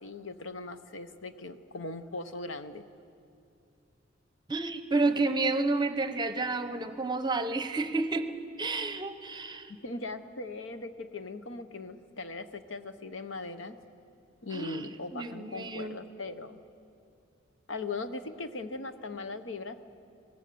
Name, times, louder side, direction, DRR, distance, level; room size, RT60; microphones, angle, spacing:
voice 1, 0.0-2.8 9.7-13.8 14.4-16.6 17.7-19.8, left 3 dB, 75° left, 10 dB, 0.9 m, -39 dB
voice 2, 4.5-8.3 8.6-9.7 14.5-16.0, right 3 dB, 25° right, 10 dB, 0.9 m, -30 dB
23.0 x 18.0 x 6.9 m, 2.4 s
head